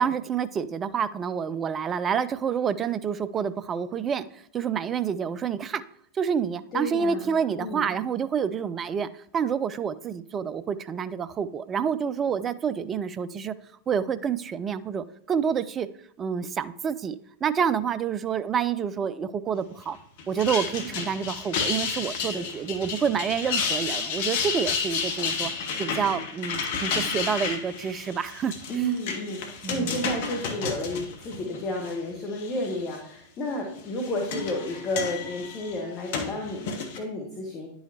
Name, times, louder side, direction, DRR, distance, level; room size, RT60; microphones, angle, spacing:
voice 1, 0.0-5.8 6.1-13.5 13.9-15.9 16.2-20.0 20.3-25.5 25.8-28.5 29.6-30.0, right 7 dB, 25° right, 15 dB, 0.4 m, -28 dB
voice 2, 6.7-7.9 20.9-21.0 22.3-22.4 28.7-37.7, left 1 dB, 30° left, 0 dB, 1.3 m, -32 dB
sound 1, 20.2-31.9 32.4-33.0 33.8-37.0, left 5 dB, 50° left, 1.0 m, -31 dB
10.0 x 5.5 x 2.8 m, 0.69 s
figure-of-eight pair, 90°, 0 cm